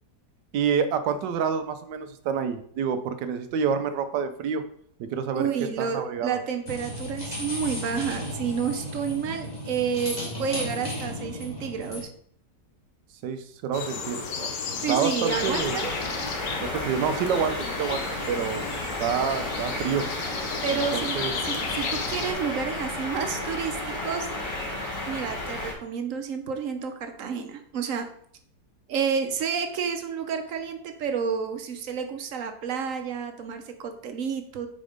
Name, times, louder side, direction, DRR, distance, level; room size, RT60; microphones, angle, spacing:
voice 1, 0.5-4.6 5.1-5.5 5.8-6.4 13.2-15.8 16.6-18.6 19.0-20.1 20.7-21.3, right 7 dB, 90° right, 9 dB, 1.3 m, -28 dB
voice 2, 5.3-12.1 14.8-15.9 20.6-21.2 21.5-24.3 25.0-28.1 28.9-34.7, right 7 dB, 60° right, 6 dB, 1.0 m, -30 dB
sound 1, 6.7-12.0, left 1 dB, 25° left, 1.7 m, -34 dB
sound 2, 13.7-22.3, left 5 dB, 65° left, 1.3 m, -33 dB
sound 3, 15.3-25.7, left 1 dB, 85° left, 2.3 m, -33 dB
5.1 x 4.3 x 5.0 m, 0.62 s
omnidirectional pair, 1.8 m